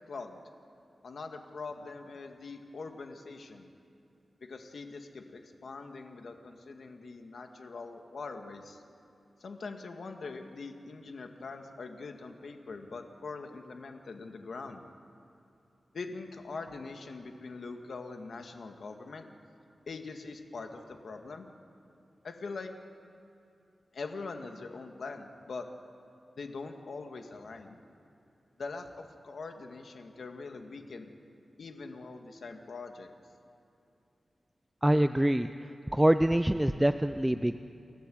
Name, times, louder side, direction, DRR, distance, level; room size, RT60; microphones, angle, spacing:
voice 1, 0.1-0.4 1.0-3.7 4.4-8.8 9.4-14.8 15.9-19.3 19.9-21.5 22.2-22.7 23.9-25.7 26.4-27.8 28.6-31.1 31.6-33.1, left 4 dB, 65° left, 5 dB, 1.9 m, -43 dB
voice 2, 34.8-35.5 35.9-37.6, right 1 dB, 10° right, 10 dB, 0.4 m, -25 dB
29.0 x 14.0 x 7.8 m, 2.7 s
wide cardioid pair, 130°, 0 cm